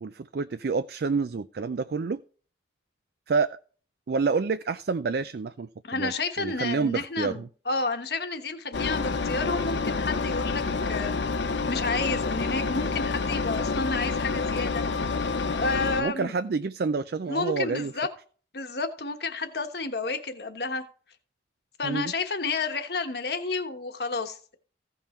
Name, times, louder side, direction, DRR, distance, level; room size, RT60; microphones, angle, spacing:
voice 1, 0.0-2.2 3.3-3.6 4.1-6.1 6.4-7.5 16.0-17.9 21.8-22.1, right 4 dB, 55° right, 12 dB, 0.4 m, -28 dB
voice 2, 5.8-10.6 10.9-11.1 11.4-14.8 15.5-16.3 17.3-18.1 18.5-20.8 21.8-24.5, left 3 dB, 60° left, 7 dB, 1.3 m, -30 dB
Engine, 8.7-16.0, left 4 dB, 75° left, 0.7 m, -28 dB
15.5 x 5.4 x 4.3 m, 0.41 s
head